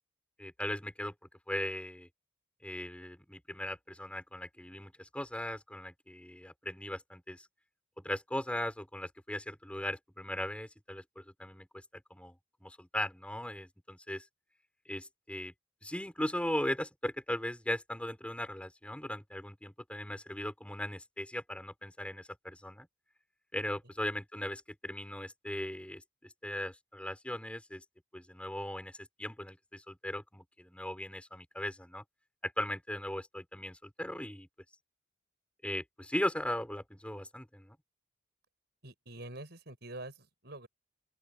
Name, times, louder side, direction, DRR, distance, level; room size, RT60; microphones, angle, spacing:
voice 1, 0.4-1.1 1.5-2.1 2.6-7.5 8.0-11.7 12.1-12.4 12.6-14.3 14.9-15.5 15.8-22.9 23.5-27.8 28.1-32.0 32.4-34.5 35.6-37.8, left 1 dB, 5° left, 4.8 m, -38 dB
voice 2, 38.8-40.7, right 2 dB, 55° right, 6.1 m, -46 dB
open air
head